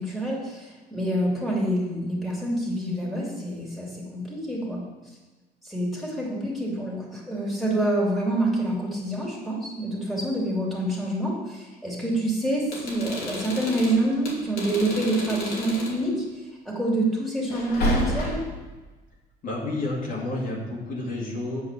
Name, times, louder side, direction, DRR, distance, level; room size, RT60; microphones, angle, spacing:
voice 1, 0.0-4.8 5.6-18.4, right 1 dB, ahead, -5 dB, 2.9 m, -27 dB
sound 1, 12.6-16.0 17.5-18.6, equal, 75° left, 2.8 m, -30 dB
voice 2, 19.4-21.6, left 2 dB, 55° left, -3 dB, 2.4 m, -30 dB
8.4 x 4.8 x 6.9 m, 1.2 s
cardioid pair, 110°, 17 cm